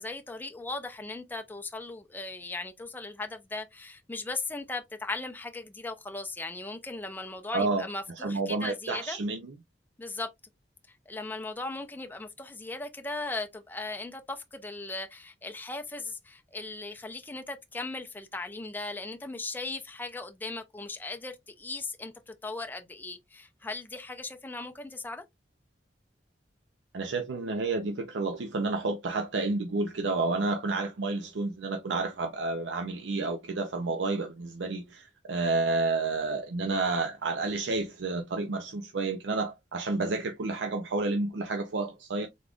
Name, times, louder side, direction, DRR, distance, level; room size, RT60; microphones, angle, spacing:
voice 1, 0.0-9.2 10.0-10.3 11.1-25.2, left 3 dB, 10° left, 0.5 m, -38 dB
voice 2, 7.5-7.9 8.2-9.5 26.9-42.3, right 3 dB, 80° right, 0.6 m, -30 dB
3.7 x 3.4 x 2.4 m
head